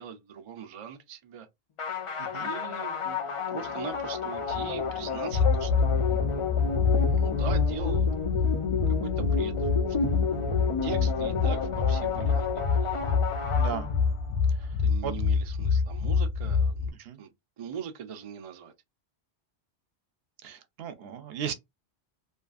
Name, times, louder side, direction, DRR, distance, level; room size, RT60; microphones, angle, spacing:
voice 1, 0.0-1.5 2.4-5.7 7.0-8.1 9.0-9.7 10.1-10.2 10.8-12.5 12.8-13.1 14.6-17.3 17.6-18.7, right 8 dB, 50° right, 0.4 m, -41 dB
sound 1, 1.8-14.3, left 6 dB, 55° left, 0.3 m, -31 dB
voice 2, 2.2-2.5 13.5-13.9 14.6-14.7 15.0-15.1 17.0-17.2 20.4-21.5, right 8 dB, 75° right, 0.8 m, -36 dB
sound 2, 4.3-16.9, left 5 dB, 75° left, 0.8 m, -27 dB
2.5 x 2.4 x 2.4 m
omnidirectional pair, 1.1 m